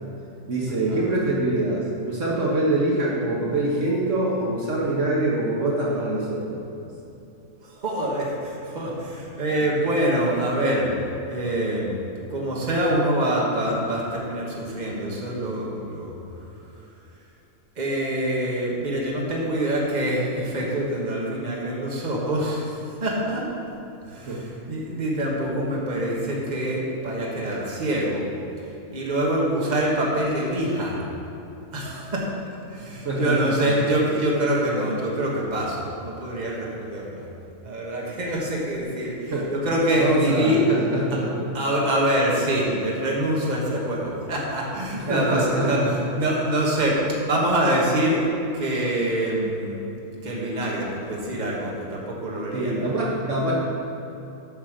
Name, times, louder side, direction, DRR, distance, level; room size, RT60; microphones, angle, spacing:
voice 1, 0.5-6.4 24.3-24.4 33.0-33.7 39.3-39.5 40.0-41.5 44.9-45.9 52.5-53.6, right 2 dB, 60° right, -4 dB, 1.5 m, -24 dB
voice 2, 7.6-10.9 11.3-11.9 12.3-16.1 17.8-22.7 23.0-23.5 24.0-28.3 28.9-31.0 31.7-32.2 32.7-37.3 37.6-40.6 41.5-48.2 48.5-52.8, right 1 dB, 30° right, -4 dB, 1.4 m, -25 dB
8.3 x 5.4 x 6.5 m, 2.9 s
omnidirectional pair, 1.5 m